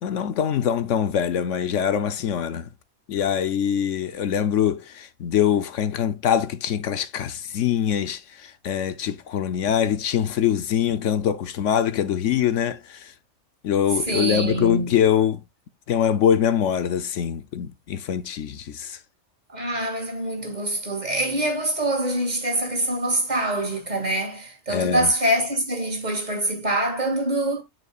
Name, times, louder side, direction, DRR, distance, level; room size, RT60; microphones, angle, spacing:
voice 1, 0.0-2.7 3.1-13.1 13.6-15.4 15.9-19.0 24.7-25.1, left 9 dB, 70° left, 1.0 m, -23 dB
voice 2, 14.1-15.0 19.5-27.6, right 1 dB, 35° right, 2.2 m, -25 dB
9.5 x 5.7 x 2.3 m
omnidirectional pair, 1.3 m